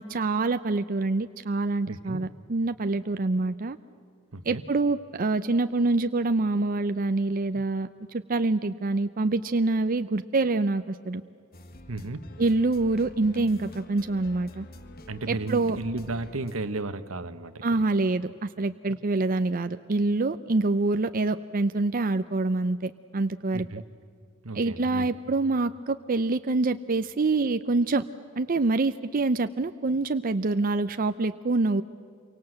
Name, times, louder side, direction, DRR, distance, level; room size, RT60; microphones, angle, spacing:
voice 1, 0.0-3.8 4.4-11.2 12.4-14.7 15.3-15.8 17.6-23.7 24.5-28.0 28.4-31.8, right 3 dB, 45° right, 10 dB, 0.6 m, -26 dB
voice 2, 1.9-2.2 4.3-4.6 11.9-12.2 15.1-17.6 23.5-23.8 24.4-25.1, right 2 dB, 80° right, 11 dB, 1.2 m, -34 dB
sound 1, 11.5-16.7, left 1 dB, 45° left, 1.6 m, -46 dB
27.5 x 24.0 x 7.8 m, 2.3 s
head